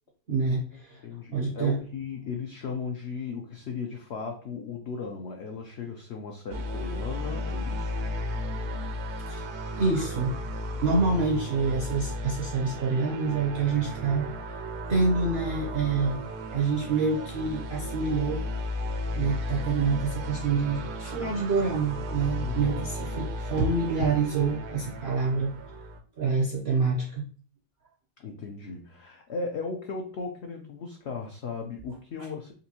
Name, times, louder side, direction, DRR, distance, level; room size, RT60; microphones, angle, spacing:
voice 1, 0.3-1.0 1.3-1.8 9.3-9.4 9.8-10.3 10.8-14.4 14.9-16.2 16.5-18.7 19.2-25.5 26.2-27.2, right 4 dB, 65° right, -1 dB, 0.6 m, -27 dB
voice 2, 1.0-7.9 10.7-11.0 22.4-22.8 28.2-32.5, left 5 dB, 80° left, 2 dB, 0.6 m, -36 dB
sound 1, 6.5-26.0, equal, 80° right, 1.2 m, -34 dB
4.1 x 2.6 x 2.8 m, 0.41 s
omnidirectional pair, 1.8 m